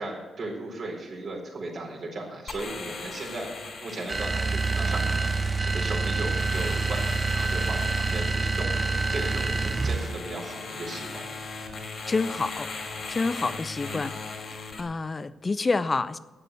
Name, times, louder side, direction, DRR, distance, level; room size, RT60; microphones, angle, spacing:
voice 1, 0.0-3.5 3.8-5.3 5.6-11.3 13.8-14.1, right 2 dB, 60° right, -1 dB, 4.3 m, -36 dB
sound 1, 2.5-14.8, left 4 dB, 55° left, 3.0 m, -39 dB
sound 2, 4.1-10.2, right 3 dB, 40° right, 0.7 m, -27 dB
voice 2, 12.1-12.7 13.1-14.1 14.5-16.2, left 3 dB, 35° left, 16 dB, 0.6 m, -28 dB
11.5 x 9.1 x 8.1 m, 1.3 s
hypercardioid pair, 40°, 0 cm